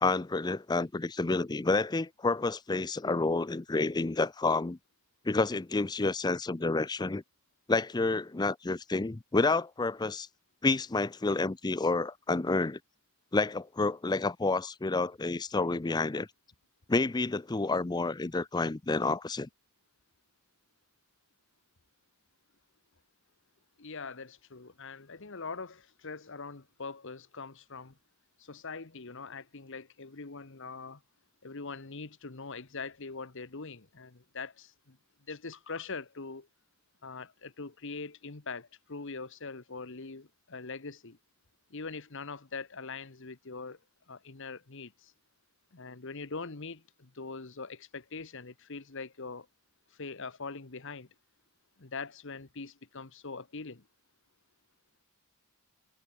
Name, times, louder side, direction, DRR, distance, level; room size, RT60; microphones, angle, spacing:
voice 1, 0.0-4.8 5.3-7.2 7.7-10.3 10.6-12.8 13.3-16.3 16.9-19.5, left 3 dB, 20° left, 0.5 m, -29 dB
voice 2, 23.8-28.0 28.4-31.0 31.4-35.0 35.3-36.5 37.0-41.2 41.7-43.8 44.1-45.1 45.7-49.5 50.0-51.1 51.8-53.8, left 4 dB, 60° left, 1.3 m, -42 dB
head